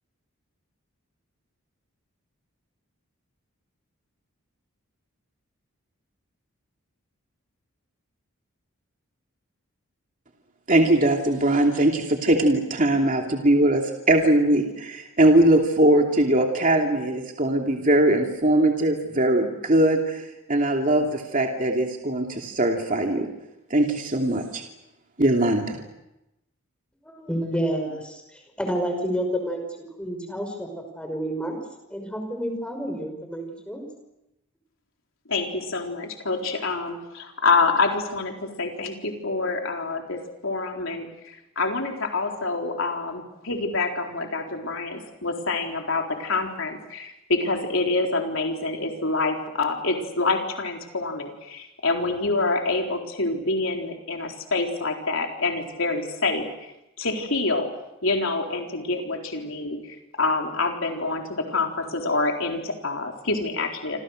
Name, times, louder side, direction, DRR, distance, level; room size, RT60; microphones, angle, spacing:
voice 1, 10.7-23.3 23.7-24.6 25.2-25.8, right 1 dB, 35° right, 2 dB, 2.7 m, -21 dB
voice 2, 27.0-29.6 30.0-30.7 30.9-31.6 31.9-33.8, equal, 5° left, 4 dB, 5.9 m, -29 dB
voice 3, 35.3-56.7 57.0-57.7 58.0-64.0, left 3 dB, 65° left, 2 dB, 4.1 m, -27 dB
28.0 x 26.5 x 6.5 m, 0.90 s
head